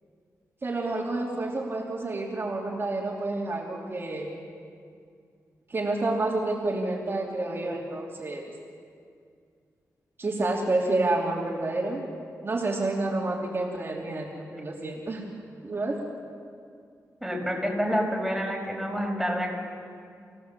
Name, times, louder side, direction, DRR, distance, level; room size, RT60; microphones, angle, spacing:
voice 1, 0.6-4.3 5.7-8.5 10.2-12.0 12.4-15.2 15.6-16.0, right 2 dB, 40° right, -3 dB, 3.1 m, -29 dB
voice 2, 17.2-19.6, equal, ahead, -2 dB, 5.4 m, -28 dB
30.0 x 16.5 x 7.6 m, 2.3 s
wide cardioid pair, 105°, 6 cm